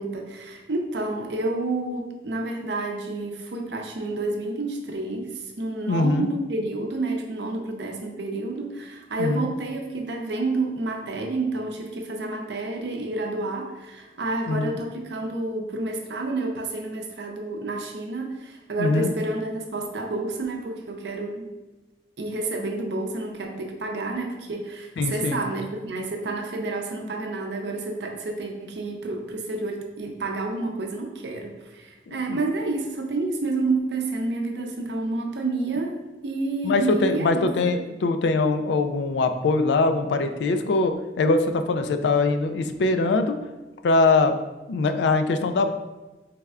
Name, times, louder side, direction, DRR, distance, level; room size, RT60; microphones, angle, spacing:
voice 1, 0.0-21.5 22.2-36.0 36.2-37.4, right 2 dB, 80° right, 2 dB, 0.6 m, -29 dB
voice 2, 5.9-6.3 9.2-9.5 14.5-14.7 18.8-19.1 25.0-25.4 32.1-32.4 36.6-43.4 43.8-44.3 44.7-45.7, left 3 dB, 80° left, 8 dB, 0.3 m, -22 dB
4.2 x 3.4 x 2.4 m, 1.1 s
head